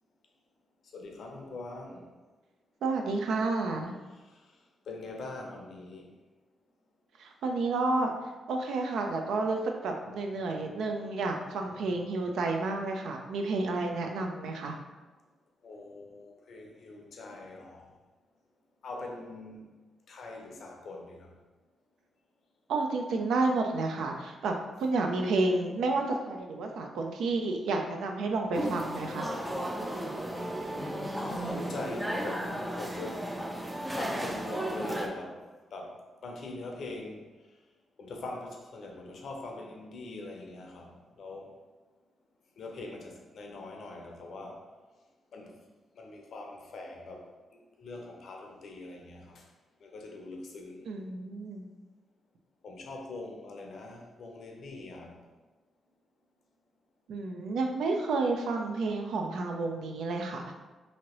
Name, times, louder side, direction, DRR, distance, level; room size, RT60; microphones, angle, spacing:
voice 1, 0.9-2.1 4.9-6.1 15.6-17.9 18.8-19.7 20.1-21.3 30.7-33.3 34.0-35.4 35.7-37.3 38.0-41.5 42.6-44.6 45.3-45.6 46.0-47.2 47.5-49.4 49.8-50.9 52.6-55.2, left 2 dB, 70° left, 1 dB, 0.6 m, -42 dB
voice 2, 2.8-3.9 7.2-8.1 8.5-14.8 22.7-29.3 50.9-51.6 57.1-60.4, right 3 dB, 75° right, 3 dB, 0.4 m, -30 dB
sound 1, 28.5-35.1, right 1 dB, 15° right, 0.4 m, -34 dB
2.9 x 2.7 x 3.0 m, 1.3 s
supercardioid pair, 50°, 0 cm